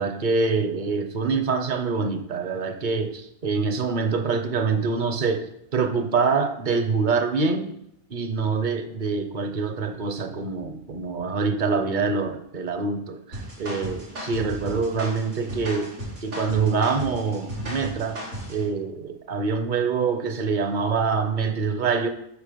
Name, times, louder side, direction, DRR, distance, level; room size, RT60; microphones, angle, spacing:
voice 1, 0.0-7.7 8.1-15.9 16.2-18.2 18.5-22.1, right 4 dB, 45° right, 8 dB, 0.8 m, -25 dB
sound 1, 13.3-18.6, equal, 90° right, 3.1 m, -35 dB
8.2 x 5.8 x 5.1 m, 0.78 s
omnidirectional pair, 1.4 m